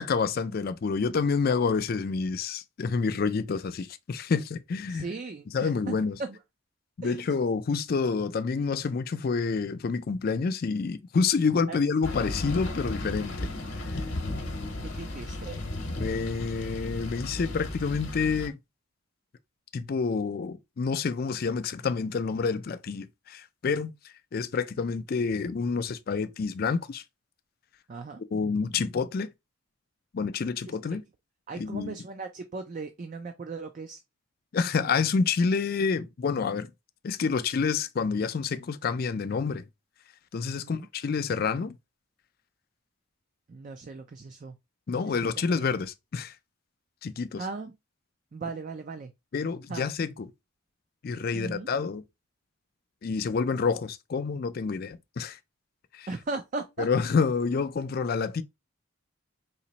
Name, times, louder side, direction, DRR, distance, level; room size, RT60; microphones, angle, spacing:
voice 1, 0.0-5.1 5.5-6.2 7.0-13.5 13.9-14.0 15.9-18.6 19.7-27.0 28.3-29.3 30.1-31.0 31.6-32.0 34.5-36.7 37.0-39.6 40.3-41.8 44.9-46.4 47.0-47.4 49.3-50.3 51.0-52.0 53.0-55.4 55.9-56.1 56.8-58.4, left 5 dB, 45° left, 0.3 m, -28 dB
voice 2, 4.9-5.9 6.2-6.4 7.0-7.2 11.7-11.8 14.8-15.6 27.9-28.2 31.5-34.0 40.6-40.9 43.5-44.6 45.1-45.3 47.4-47.7 48.3-49.1 49.7-49.8 51.3-51.7 56.1-56.9, right 3 dB, 35° right, 0.3 m, -37 dB
sound 1, 12.0-18.5, left 2 dB, 60° left, 0.9 m, -34 dB
4.1 x 2.9 x 2.8 m
head